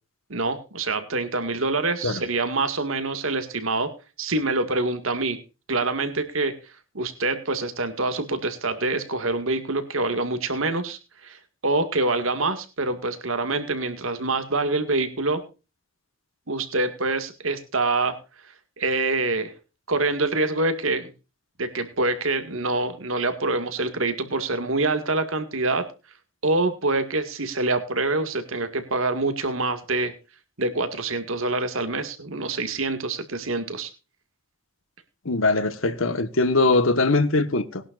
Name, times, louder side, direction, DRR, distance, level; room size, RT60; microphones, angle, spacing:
voice 1, 0.3-3.9 4.2-5.4 5.7-6.5 6.9-15.4 16.5-18.2 18.8-19.5 19.9-21.1 21.6-25.9 26.4-30.1 30.6-33.9, right 2 dB, 90° right, 2.1 m, -25 dB
voice 2, 35.2-37.8, left 3 dB, 80° left, 1.4 m, -21 dB
20.5 x 11.5 x 2.5 m
head